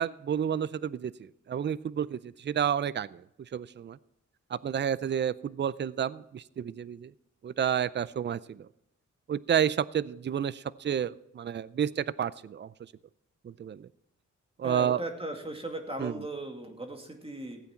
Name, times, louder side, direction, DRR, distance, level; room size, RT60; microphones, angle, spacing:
voice 1, 0.0-4.0 4.5-7.1 7.4-8.7 9.3-12.9 13.4-13.9 14.6-15.0 16.0-16.2, right 9 dB, 35° right, 19 dB, 0.4 m, -30 dB
voice 2, 14.6-17.6, right 1 dB, 20° right, 3 dB, 2.2 m, -37 dB
15.5 x 8.5 x 4.4 m, 0.80 s
cardioid pair, 85°, 30 cm